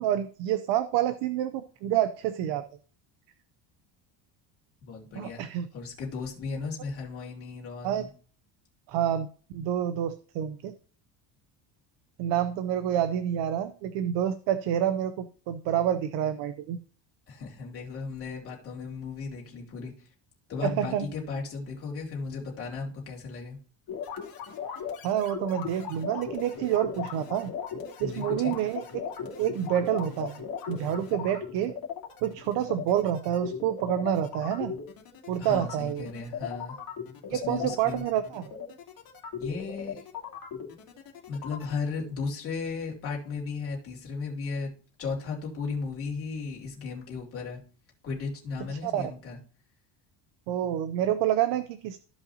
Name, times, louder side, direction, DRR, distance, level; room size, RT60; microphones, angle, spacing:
voice 1, 0.0-2.6 5.1-5.7 7.8-8.1 8.9-9.3 9.5-10.7 12.2-16.8 20.6-21.1 25.0-27.5 28.0-28.8 29.4-31.8 32.2-34.7 35.3-36.1 37.3-38.5 48.7-49.1 50.5-52.0, right 10 dB, 65° right, 11 dB, 0.8 m, -28 dB
voice 2, 4.8-8.1 17.3-20.1 20.5-23.6 28.0-28.6 35.4-36.8 37.3-38.1 39.4-40.0 41.3-44.7 45.0-47.6 48.0-49.4, left 4 dB, 30° left, -2 dB, 3.0 m, -35 dB
sound 1, 23.9-41.7, left 7 dB, 50° left, 2.6 m, -38 dB
15.0 x 5.3 x 2.8 m, 0.41 s
cardioid pair, 175°, 46 cm